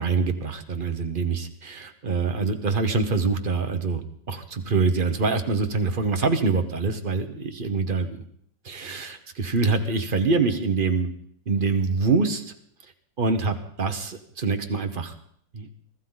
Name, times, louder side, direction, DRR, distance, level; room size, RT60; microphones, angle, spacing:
voice 1, 0.0-4.0 4.3-8.2 8.6-11.1 11.5-12.4 13.2-15.1 15.5-15.7, right 4 dB, 35° right, 7 dB, 0.9 m, -25 dB
24.0 x 14.5 x 4.0 m, 0.66 s
omnidirectional pair, 2.0 m